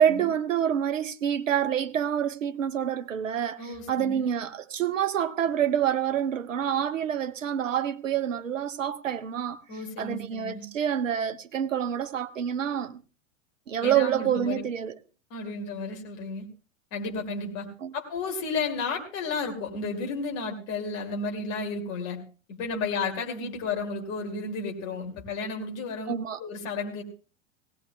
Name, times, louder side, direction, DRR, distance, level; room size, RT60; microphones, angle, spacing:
voice 1, 0.0-9.6 10.0-13.0 13.7-15.0 17.8-17.9 26.1-26.4, right 9 dB, 75° right, 0.7 m, -27 dB
voice 2, 3.6-4.3 9.7-10.7 13.8-14.6 15.3-16.5 16.9-17.7 17.9-22.2 22.5-27.0, left 4 dB, 40° left, 2.6 m, -33 dB
18.0 x 17.0 x 2.3 m
figure-of-eight pair, 90°, 38 cm